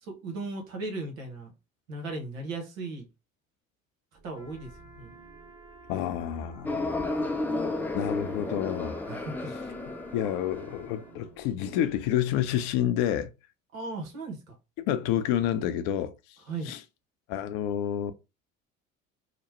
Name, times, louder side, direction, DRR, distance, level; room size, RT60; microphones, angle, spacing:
voice 1, 0.0-1.5 1.9-3.1 4.2-5.1 9.1-9.4 13.7-14.5 16.5-16.7, right 3 dB, 80° right, 1.0 m, -37 dB
sound 1, 4.1-13.0, right 3 dB, 30° right, 1.1 m, -55 dB
Trumpet, 4.3-11.3, right 1 dB, 10° right, 0.8 m, -53 dB
voice 2, 5.9-7.0 7.9-9.0 10.1-13.3 14.9-16.1 16.7-16.8 17.3-18.1, left 11 dB, 65° left, 0.6 m, -29 dB
sound 2, 6.6-11.0, left 2 dB, 5° left, 0.4 m, -32 dB
2.9 x 2.1 x 3.0 m
hypercardioid pair, 60°, 40 cm